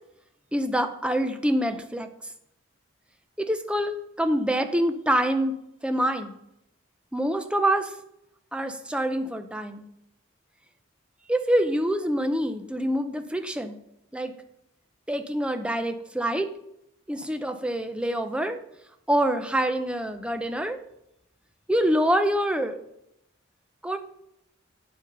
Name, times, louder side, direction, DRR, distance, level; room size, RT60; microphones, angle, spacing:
voice 1, 0.5-2.1 3.4-5.5 5.8-6.4 7.1-7.9 8.5-9.8 11.3-13.8 14.1-14.3 15.1-16.5 17.1-18.6 19.1-20.8 21.7-22.8 23.8-24.0, right 1 dB, 5° right, 7 dB, 0.7 m, -26 dB
9.2 x 7.1 x 5.3 m, 0.80 s
head